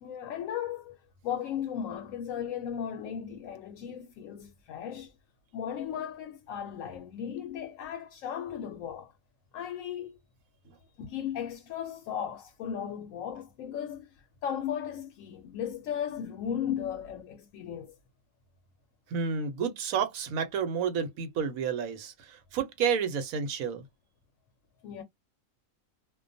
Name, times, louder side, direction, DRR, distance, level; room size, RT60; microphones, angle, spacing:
voice 1, 0.0-1.0 1.2-5.1 5.5-9.1 9.5-10.2 11.0-17.9 24.8-25.0, left 9 dB, 80° left, 1.0 m, -36 dB
voice 2, 19.1-23.8, right 6 dB, 90° right, 1.1 m, -30 dB
2.4 x 2.2 x 2.5 m
omnidirectional pair, 1.4 m